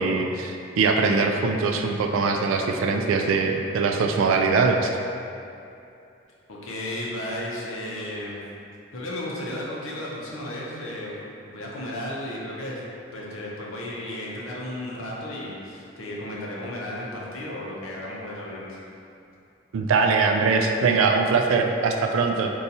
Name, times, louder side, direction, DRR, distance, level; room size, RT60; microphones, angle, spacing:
voice 1, 0.0-5.0 19.7-22.5, right 4 dB, 80° right, 4 dB, 0.3 m, -22 dB
voice 2, 6.5-8.4 8.9-11.2 11.5-12.8 13.1-18.8, left 1 dB, 85° left, -4 dB, 0.6 m, -34 dB
2.7 x 2.3 x 4.0 m, 2.6 s
head